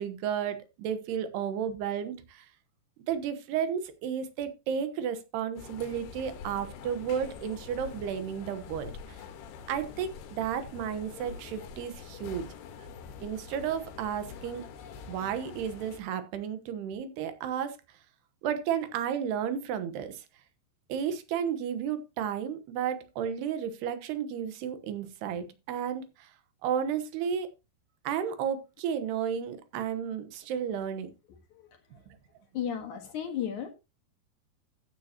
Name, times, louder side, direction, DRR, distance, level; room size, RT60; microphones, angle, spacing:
voice 1, 0.0-2.5 3.1-9.2 9.7-12.5 13.2-14.6 15.1-17.8 18.4-20.2 20.9-26.3 26.6-27.5 28.0-31.1 32.1-32.2, right 8 dB, 75° right, 10 dB, 3.1 m, -33 dB
sound 1, 5.6-16.0, left 6 dB, 75° left, 3.4 m, -45 dB
voice 2, 32.5-33.7, left 9 dB, 60° left, 4 dB, 2.4 m, -34 dB
14.0 x 8.6 x 2.9 m, 0.26 s
omnidirectional pair, 4.9 m